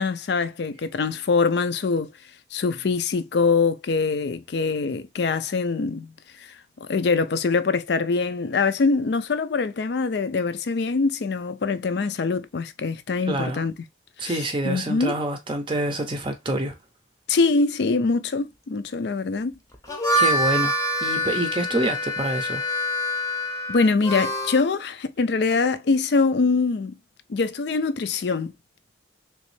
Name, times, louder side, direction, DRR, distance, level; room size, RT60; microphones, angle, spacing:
voice 1, 0.0-2.1 2.5-6.1 6.4-6.5 6.9-13.7 14.2-15.2 17.3-19.6 23.7-27.0 27.3-28.5, left 4 dB, 65° left, 0.4 m, -23 dB
voice 2, 13.3-13.6 14.2-16.7 20.2-20.7 21.0-22.6, right 1 dB, 25° right, 0.5 m, -26 dB
Harmonica, 19.7-24.7, equal, 15° left, 0.7 m, -25 dB
3.2 x 3.0 x 3.1 m
head